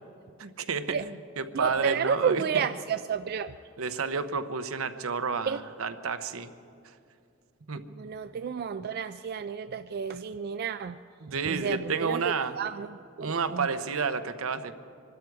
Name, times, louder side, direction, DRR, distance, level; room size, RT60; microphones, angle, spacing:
voice 1, 0.4-2.4 3.8-6.5 7.7-7.8 11.2-12.6 13.2-14.7, right 5 dB, 80° right, 10 dB, 0.8 m, -30 dB
voice 2, 1.5-3.5 5.5-5.6 8.0-11.0 11.3-12.2 12.6-12.9 13.2-13.7, right 7 dB, 50° right, 11 dB, 0.3 m, -31 dB
24.0 x 12.5 x 4.7 m, 2.5 s
head